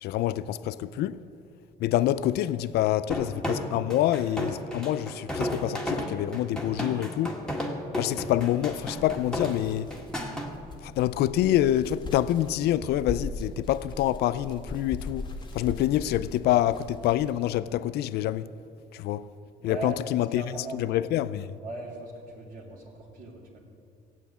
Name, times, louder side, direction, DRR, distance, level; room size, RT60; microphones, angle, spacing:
voice 1, 0.0-1.2 1.8-7.4 8.0-9.9 10.8-18.5 18.9-19.3 19.6-20.4 20.7-21.6, left 13 dB, 75° left, 0.5 m, -26 dB
sound 1, 3.1-10.5, left 1 dB, 5° left, 2.0 m, -33 dB
sound 2, 8.5-17.5, left 2 dB, 25° left, 1.6 m, -40 dB
voice 2, 19.6-21.3 21.6-23.6, right 2 dB, 55° right, 2.7 m, -39 dB
16.5 x 8.3 x 8.5 m
cardioid pair, 110°, 17 cm